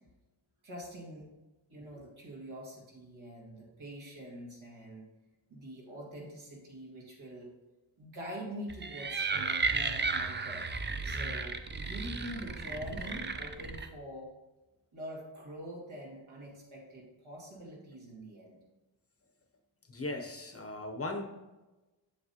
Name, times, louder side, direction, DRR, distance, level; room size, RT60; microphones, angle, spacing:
voice 1, 0.6-1.3 1.7-5.1 5.5-7.5 8.0-10.7 11.0-14.3 14.9-18.6, equal, 90° right, -2 dB, 2.1 m, -45 dB
sound 1, 8.7-13.9, right 4 dB, 25° right, 0.4 m, -34 dB
voice 2, 19.9-21.3, left 2 dB, 30° left, 4 dB, 0.7 m, -38 dB
7.4 x 7.2 x 2.8 m, 1.1 s
wide cardioid pair, 140°, 47 cm